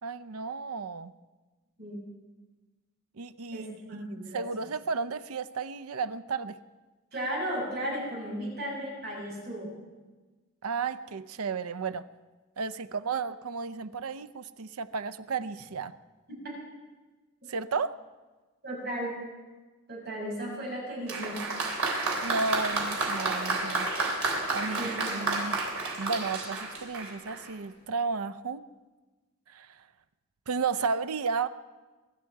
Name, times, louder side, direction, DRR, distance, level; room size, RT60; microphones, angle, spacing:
voice 1, 0.0-1.1 3.2-6.6 10.6-12.1 12.6-15.9 17.5-18.0 22.2-23.9 24.5-25.6 26.0-28.6 29.5-29.9 30.5-31.5, right 5 dB, 85° right, 14 dB, 0.6 m, -33 dB
voice 2, 3.5-4.4 7.1-9.7 18.6-19.2 19.9-21.4 24.6-25.2, equal, 50° right, -3 dB, 6.8 m, -35 dB
Applause, 21.1-27.5, right 3 dB, 65° right, 3.6 m, -31 dB
24.0 x 12.5 x 4.7 m, 1.2 s
head